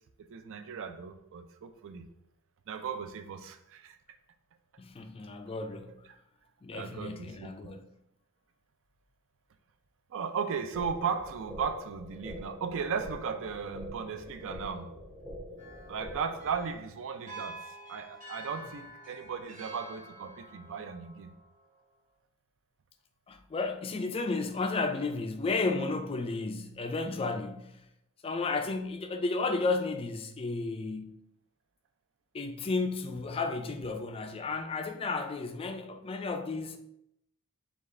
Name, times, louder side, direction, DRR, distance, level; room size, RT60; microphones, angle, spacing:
voice 1, 0.3-2.1 2.7-4.0 6.7-7.7 10.1-14.9 15.9-17.6 17.9-21.3, right 6 dB, 60° right, 0.4 m, -36 dB
voice 2, 4.8-6.0 6.6-7.8 23.3-27.8 28.2-31.2 32.3-36.8, left 3 dB, 25° left, 0.3 m, -33 dB
sound 1, 10.7-16.7, equal, 15° right, 0.7 m, -45 dB
sound 2, 15.6-21.8, right 1 dB, 35° right, 1.2 m, -48 dB
5.1 x 2.4 x 3.7 m
head